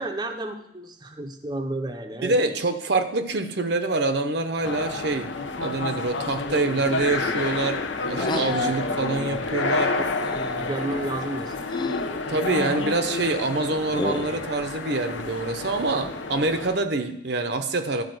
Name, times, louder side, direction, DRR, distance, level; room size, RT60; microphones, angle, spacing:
voice 1, 0.0-2.6 9.9-11.6, right 1 dB, 20° right, 3 dB, 0.7 m, -32 dB
voice 2, 2.2-5.3 5.6-9.9 12.3-18.0, right 3 dB, 55° right, 8 dB, 0.8 m, -26 dB
sound 1, 4.6-16.8, left 3 dB, 75° left, 0.9 m, -29 dB
sound 2, 8.2-8.7 10.2-10.7 11.7-12.1 12.4-12.9 13.9-14.5, left 2 dB, 25° left, 0.4 m, -32 dB
12.0 x 4.9 x 7.8 m, 0.75 s
head